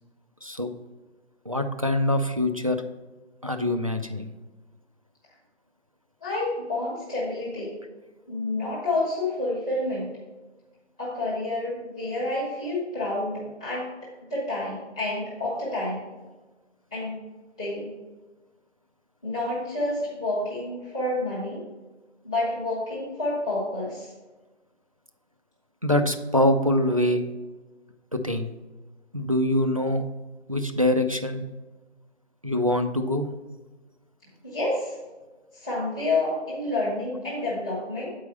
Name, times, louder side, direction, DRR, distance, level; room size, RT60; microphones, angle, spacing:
voice 1, 1.5-2.8 3.4-4.3 25.8-27.2 28.1-28.5 29.1-30.0 30.5-31.4 32.4-33.3, left 1 dB, 30° right, 6 dB, 0.4 m, -24 dB
voice 2, 6.2-7.7 8.3-10.2 11.0-13.9 14.3-16.0 16.9-17.2 17.6-17.9 19.2-21.6 22.2-24.1 34.4-35.0 35.5-38.1, left 2 dB, 5° left, -10 dB, 0.6 m, -29 dB
8.1 x 4.7 x 5.4 m, 1.2 s
figure-of-eight pair, 145°, 35 cm